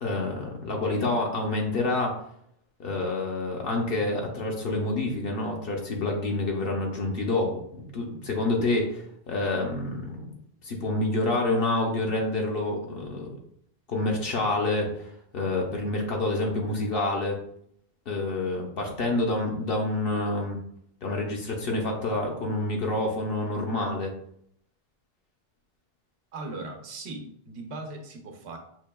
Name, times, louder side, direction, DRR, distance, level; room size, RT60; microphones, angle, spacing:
voice 1, 0.0-2.1 2.8-10.3 10.6-13.3 13.9-17.4 18.1-20.6 21.0-24.1, left 2 dB, 65° left, 0 dB, 0.8 m, -28 dB
voice 2, 26.3-28.6, right 2 dB, 85° right, 4 dB, 0.9 m, -38 dB
5.7 x 2.7 x 2.2 m, 0.70 s
omnidirectional pair, 1.1 m